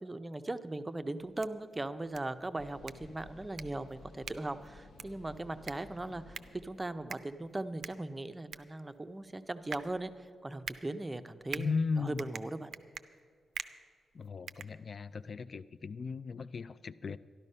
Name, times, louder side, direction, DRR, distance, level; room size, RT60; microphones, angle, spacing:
voice 1, 0.0-12.7, right 2 dB, 15° right, 10 dB, 0.5 m, -39 dB
sound 1, 1.2-15.3, right 7 dB, 70° right, 0.5 m, -48 dB
sound 2, 2.6-7.6, left 2 dB, 70° left, 0.7 m, -55 dB
voice 2, 11.5-12.2 14.1-17.2, left 4 dB, 45° left, 16 dB, 0.3 m, -36 dB
12.5 x 12.0 x 5.5 m, 2.1 s
wide cardioid pair, 120°, 0 cm